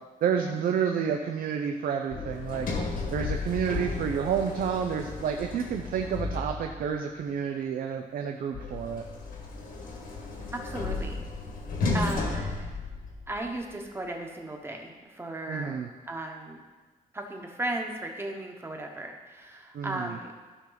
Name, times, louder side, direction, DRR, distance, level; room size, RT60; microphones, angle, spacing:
voice 1, 0.2-2.7 3.1-9.1 15.5-15.9 19.7-20.2, right 7 dB, 85° right, 3 dB, 0.6 m, -30 dB
Sliding door, 2.1-6.9 8.5-13.5, left 3 dB, 80° left, 1.8 m, -34 dB
voice 2, 10.5-11.3 11.9-12.7 13.3-16.6 17.1-20.3, right 1 dB, 15° right, 2 dB, 1.1 m, -36 dB
13.5 x 5.9 x 4.0 m, 1.3 s
wide cardioid pair, 140°, 15 cm